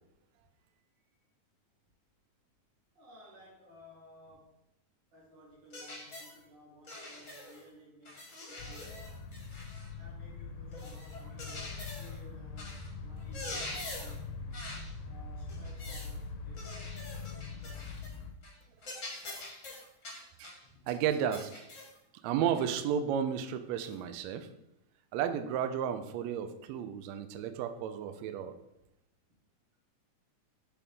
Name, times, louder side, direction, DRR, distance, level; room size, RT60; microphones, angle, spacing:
voice 1, 0.6-0.9 2.9-4.5 5.1-9.7 10.0-14.7 15.0-17.9 20.6-20.8, equal, 40° right, -7 dB, 2.5 m, -58 dB
sound 1, 5.7-6.4 6.9-7.6 8.0-9.9 10.7-12.2 12.6-12.9 13.2-14.2 14.5-14.9 15.5-16.2 16.6-18.2 18.4-18.6 18.8-20.6 21.3-22.0 22.5-22.7 23.8-23.9, left 2 dB, 40° left, 1.1 m, -45 dB
sound 2, 8.6-18.3, left 4 dB, 75° left, 1.9 m, -43 dB
voice 2, 20.9-21.6 22.2-24.5 25.1-28.5, right 8 dB, 80° right, 9 dB, 1.6 m, -33 dB
6.8 x 3.6 x 5.3 m, 0.88 s
omnidirectional pair, 3.6 m